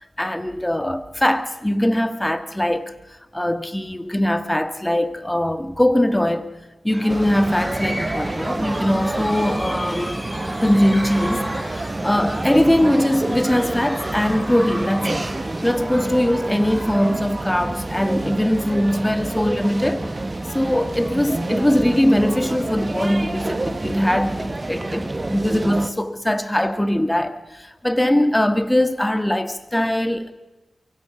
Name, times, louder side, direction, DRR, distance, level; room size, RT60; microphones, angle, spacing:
voice 1, 0.2-2.9 3.3-6.5 6.8-10.2 10.6-15.3 15.6-20.1 20.5-30.3, left 1 dB, 10° left, 1.6 m, -21 dB
Squeak, 6.9-15.7, left 2 dB, 35° left, 3.8 m, -42 dB
sound 1, 6.9-17.4, equal, 15° right, 5.3 m, -34 dB
sound 2, 7.1-25.9, right 2 dB, 35° right, 1.4 m, -28 dB
24.0 x 23.5 x 5.0 m
cardioid pair, 60°, 0 cm